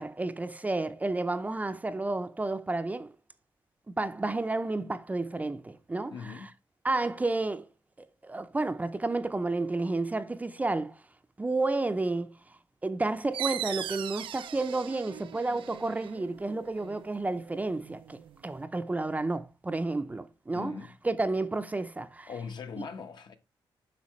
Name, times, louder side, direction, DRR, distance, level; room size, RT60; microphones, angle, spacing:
voice 1, 0.0-3.1 4.0-6.3 6.8-7.7 8.0-11.0 11.4-12.3 12.8-20.7 21.0-22.3, right 2 dB, 20° right, 0.5 m, -31 dB
voice 2, 6.1-6.5 20.5-20.9 22.3-23.3, left 5 dB, 60° left, 1.0 m, -40 dB
sound 1, 13.3-18.6, right 11 dB, 80° right, 0.4 m, -40 dB
8.2 x 5.7 x 3.1 m
cardioid pair, 115°, 9 cm